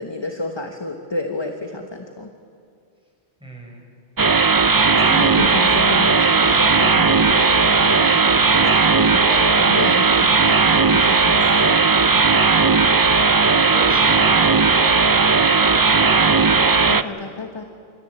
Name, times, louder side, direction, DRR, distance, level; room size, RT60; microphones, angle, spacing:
voice 1, 0.0-2.3 4.7-11.8 16.7-17.6, left 2 dB, 25° left, 4 dB, 1.2 m, -30 dB
voice 2, 3.4-3.8 13.0-16.9, equal, 5° right, -2 dB, 5.6 m, -35 dB
sound 1, 4.2-17.0, right 4 dB, 35° right, 0.3 m, -16 dB
28.0 x 14.0 x 9.2 m, 2.4 s
omnidirectional pair, 1.2 m